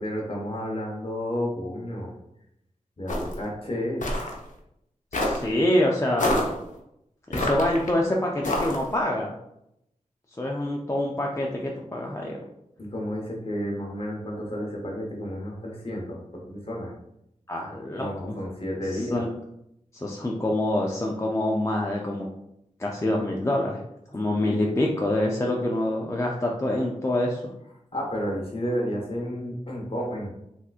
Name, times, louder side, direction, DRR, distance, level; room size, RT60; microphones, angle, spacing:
voice 1, 0.0-2.1 3.0-4.0 12.8-16.9 18.0-19.2 27.9-30.3, equal, 45° left, -1 dB, 1.0 m, -31 dB
sound 1, 3.1-3.4 4.0-4.3 5.1-5.5 6.2-6.5 7.3-7.9 8.4-8.9, left 1 dB, 70° left, 0.7 m, -26 dB
voice 2, 5.1-6.5 7.3-9.3 10.3-12.4 17.5-18.3 18.9-19.3 19.9-22.3 22.8-23.8 24.1-27.5, left 1 dB, 20° left, -1 dB, 0.4 m, -26 dB
3.4 x 2.8 x 2.4 m, 0.81 s
cardioid pair, 45°, 13 cm